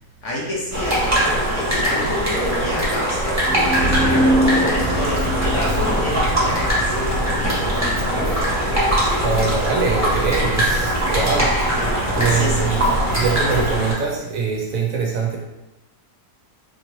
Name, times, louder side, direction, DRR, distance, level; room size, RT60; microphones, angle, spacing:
voice 1, 0.2-3.4 4.0-7.8 12.3-12.6, left 1 dB, 60° left, -3 dB, 1.0 m, -29 dB
sound 1, 0.7-13.9, equal, 10° right, 1.1 m, -21 dB
sound 2, 3.4-7.1, equal, 15° left, 0.4 m, -23 dB
Walk footsteps, 4.7-13.7, equal, 45° right, 0.4 m, -28 dB
voice 2, 8.9-11.5 12.1-12.8 13.2-15.4, right 5 dB, 65° right, -1 dB, 1.0 m, -23 dB
4.3 x 2.8 x 3.0 m, 0.97 s
omnidirectional pair, 1.7 m